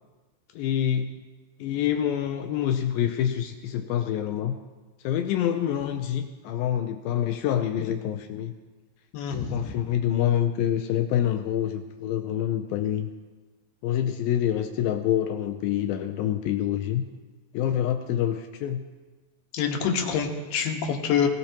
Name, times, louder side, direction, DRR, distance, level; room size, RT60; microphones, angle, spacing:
voice 1, 0.6-1.1 1.6-4.6 5.0-8.5 9.3-13.1 13.8-17.0 17.5-18.9, left 10 dB, 80° left, 6 dB, 2.1 m, -26 dB
voice 2, 9.1-9.8 19.5-21.3, left 7 dB, 65° left, 2 dB, 2.7 m, -26 dB
21.0 x 17.0 x 2.9 m, 1.3 s
omnidirectional pair, 4.8 m